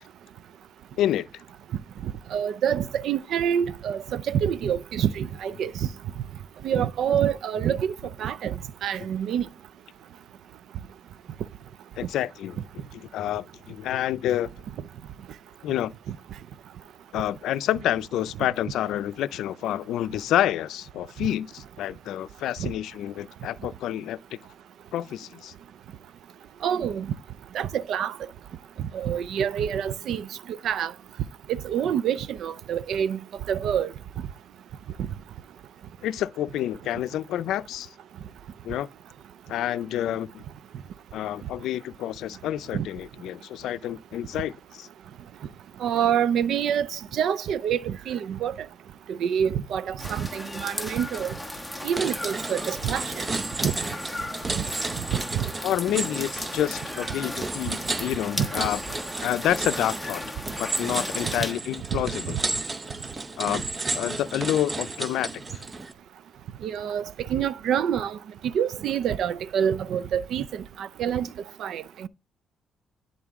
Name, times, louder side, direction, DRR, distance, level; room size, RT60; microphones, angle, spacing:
voice 1, 1.0-1.4 12.0-12.6 13.1-14.5 15.6-15.9 17.1-24.2 24.9-25.5 36.0-37.9 38.6-38.9 39.5-40.4 41.1-44.5 44.8-44.9 55.6-58.8 59.2-60.2 60.6-62.4 63.4-63.6 63.9-65.6, left 12 dB, 85° left, 0.4 m, -28 dB
voice 2, 2.3-5.7 6.6-8.5 8.8-9.5 22.6-22.7 26.6-27.1 27.5-28.1 28.9-30.3 30.6-30.9 31.5-33.2 33.5-33.9 42.7-42.9 45.8-48.5 49.1-51.3 51.8-53.2 53.6-53.7 54.6-54.7 55.3-55.5 58.4-58.5 61.9-62.0 66.6-68.2 68.5-71.3 71.6-72.1, right 9 dB, 75° right, 0.5 m, -26 dB
sound 1, 50.0-61.5, left 1 dB, ahead, 1.1 m, -36 dB
sound 2, 51.4-51.6 52.0-65.9, right 3 dB, 30° right, 0.7 m, -33 dB
10.5 x 3.8 x 3.5 m
cardioid pair, 90°, 0 cm